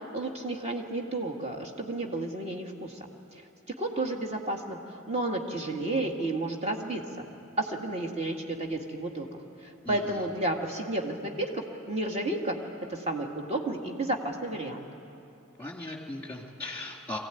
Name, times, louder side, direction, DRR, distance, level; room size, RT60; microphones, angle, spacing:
voice 1, 0.1-3.0 3.8-4.8 5.1-7.0 7.6-12.5 12.9-14.9, right 2 dB, 30° right, 2 dB, 1.8 m, -32 dB
voice 2, 9.8-10.2 15.6-17.2, left 2 dB, 10° left, 1 dB, 2.4 m, -38 dB
23.0 x 16.5 x 9.2 m, 2.7 s
head